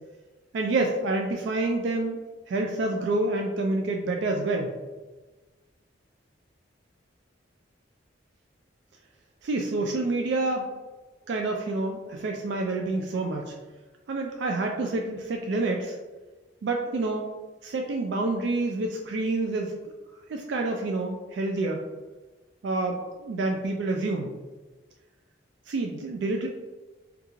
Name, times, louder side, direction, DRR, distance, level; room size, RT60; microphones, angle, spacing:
voice 1, 0.5-2.2 2.5-4.7 9.4-10.7 11.3-13.5 14.1-16.0 16.6-17.3 17.6-19.7 20.3-21.8 22.6-24.3 25.7-26.5, right 2 dB, 65° right, 2 dB, 0.3 m, -28 dB
3.6 x 2.3 x 3.0 m, 1.2 s
head